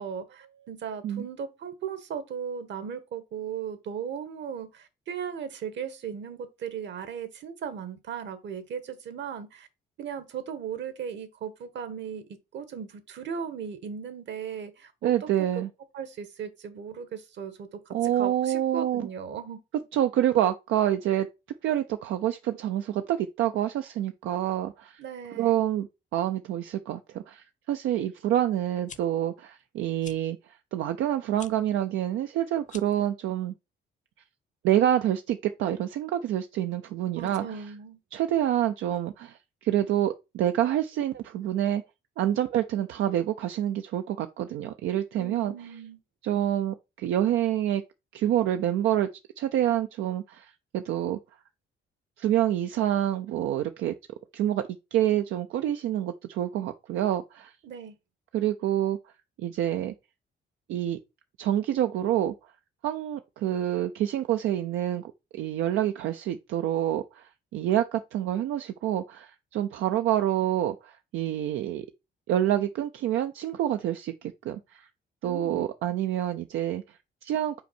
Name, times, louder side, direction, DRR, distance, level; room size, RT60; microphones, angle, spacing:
voice 1, 0.0-9.7 10.0-15.3 15.5-15.6 15.9-19.6 25.0-25.6 37.2-38.0 45.1-46.0 57.6-58.0 75.2-75.7, right 7 dB, 65° right, 1.3 m, -37 dB
voice 2, 15.0-15.7 17.9-19.1 19.9-21.3 21.6-25.0 25.3-25.9 26.1-33.5 34.6-37.6 38.1-41.8 42.2-45.5 46.2-47.8 48.1-49.1 49.4-51.2 52.2-53.9 54.3-54.6 54.9-57.5 58.3-59.0 59.4-59.9 60.7-61.0 61.4-62.3 62.8-71.9 72.3-74.9 75.2-77.6, right 12 dB, 85° right, 0.5 m, -27 dB
sound 1, 28.7-29.0 30.0-30.2 31.3-31.5 32.6-33.0, left 6 dB, 40° left, 0.7 m, -45 dB
5.6 x 4.5 x 4.2 m
cardioid pair, 90°, 20 cm